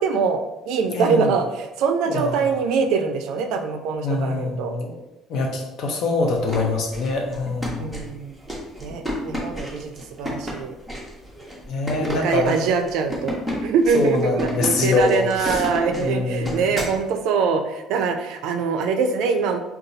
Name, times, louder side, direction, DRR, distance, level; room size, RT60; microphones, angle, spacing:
voice 1, 0.0-4.8 7.8-8.3 8.8-9.9 10.2-10.8 12.0-19.6, right 5 dB, 70° right, 6 dB, 0.3 m, -23 dB
voice 2, 0.9-1.3 2.0-2.5 4.0-4.9 5.3-7.9 11.7-12.7 13.9-15.7 16.0-16.7, left 3 dB, 55° left, 2 dB, 0.6 m, -24 dB
sound 1, 6.3-17.0, equal, 5° left, 0.7 m, -32 dB
2.6 x 2.3 x 3.9 m, 0.97 s
cardioid pair, 155°, 0 cm